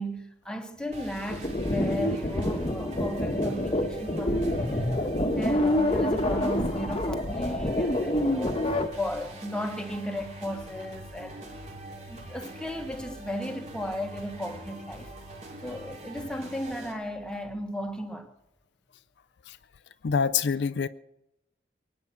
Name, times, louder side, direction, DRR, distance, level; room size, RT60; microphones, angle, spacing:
voice 1, 0.0-5.0 5.3-8.7 9.0-11.5 12.1-15.1 15.6-18.3, equal, 5° left, 1.2 m, -35 dB
sound 1, 0.9-16.9, right 1 dB, 40° right, 3.3 m, -43 dB
sound 2, 1.3-8.9, left 1 dB, 30° left, 1.1 m, -27 dB
voice 2, 20.0-20.9, left 6 dB, 70° left, 0.4 m, -25 dB
23.0 x 9.6 x 6.1 m
head